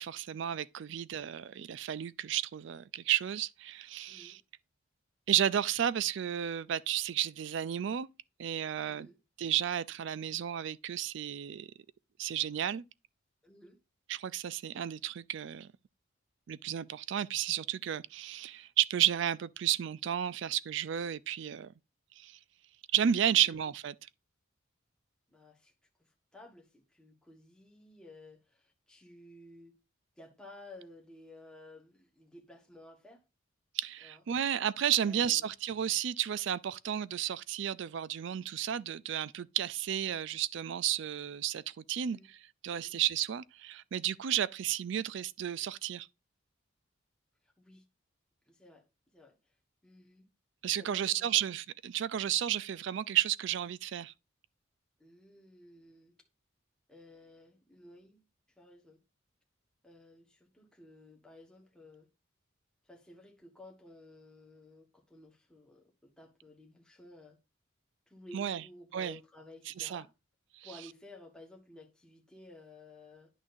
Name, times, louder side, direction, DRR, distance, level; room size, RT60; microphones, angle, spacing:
voice 1, 0.0-4.4 5.3-8.1 8.4-9.1 9.4-11.7 12.2-12.8 14.1-15.7 16.5-21.7 22.2-22.4 22.9-23.9 33.7-46.1 50.6-54.1 68.3-68.6 68.9-69.2 69.7-70.0 70.6-70.7, right 10 dB, 60° right, 0.3 m, -32 dB
voice 2, 4.1-4.4 8.9-9.2 13.4-13.8 23.4-23.6 25.3-25.7 26.0-29.7 30.2-33.2 34.0-34.2 35.0-35.5 42.1-42.3 42.8-43.0 47.4-47.8 48.5-48.8 49.1-49.4 49.8-50.3 50.8-51.3 55.0-56.2 56.9-58.3 58.6-59.0 59.8-62.1 62.8-67.4 68.1-70.1 70.6-73.3, left 2 dB, 5° left, 1.4 m, -54 dB
10.0 x 6.2 x 2.6 m
head